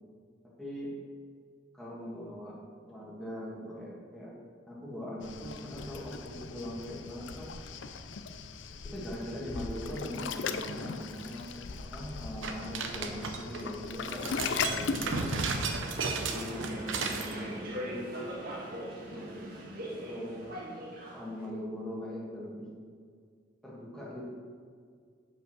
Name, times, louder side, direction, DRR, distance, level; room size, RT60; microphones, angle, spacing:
voice 1, 0.4-0.9 1.7-2.6 2.9-4.4 4.7-7.6 8.8-15.5 16.1-18.3 19.0-19.4 19.9-22.7 23.6-24.2, equal, ahead, -5 dB, 1.8 m, -41 dB
Waves surf, 5.2-15.8, left 5 dB, 75° left, 0.5 m, -38 dB
sound 1, 12.4-13.6 14.0-17.3, right 4 dB, 90° right, 0.8 m, -34 dB
sound 2, 15.7-21.4, right 1 dB, 50° right, 1.7 m, -41 dB
7.4 x 5.4 x 6.2 m, 2.1 s
head